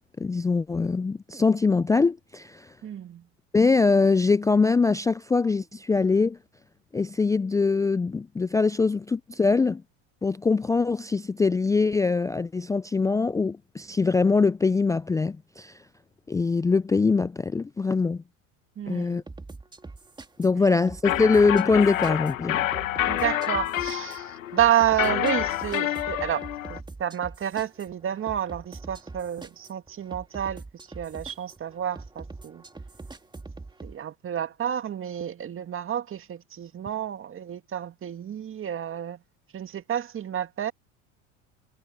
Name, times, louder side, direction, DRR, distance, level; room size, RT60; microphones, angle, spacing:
voice 1, 0.2-2.7 3.5-6.4 6.9-9.8 10.2-15.7 16.3-18.2 18.9-19.2 20.4-22.7, left 4 dB, 10° left, 0.4 m, -23 dB
voice 2, 2.8-3.3 18.8-19.2 20.7-20.8 23.0-30.6 31.0-32.6 33.8-39.2 39.5-40.7, right 10 dB, 30° right, 2.1 m, -30 dB
sound 1, 19.3-34.0, right 3 dB, 10° right, 1.9 m, -43 dB
sound 2, 21.0-26.8, left 13 dB, 85° left, 1.2 m, -28 dB
hypercardioid pair, 85°, 39 cm